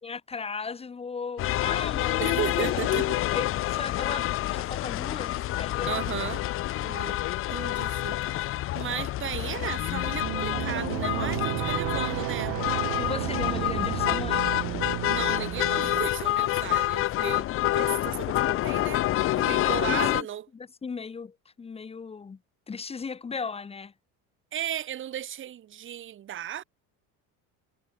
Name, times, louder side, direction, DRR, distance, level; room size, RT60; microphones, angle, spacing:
voice 1, 0.0-6.0 13.0-14.5 19.6-20.3 20.8-22.4 22.7-23.9, left 5 dB, 15° left, 3.7 m, -36 dB
sound 1, 1.4-20.2, left 15 dB, 35° left, 0.9 m, -28 dB
voice 2, 2.2-3.2 5.9-6.4 6.8-7.2 7.5-12.6 15.1-17.5 17.7-19.0 19.4-20.5 24.5-26.6, right 11 dB, 30° right, 5.0 m, -35 dB
sound 2, 10.1-16.1, right 24 dB, 60° right, 1.7 m, -32 dB
cardioid pair, 175°, 37 cm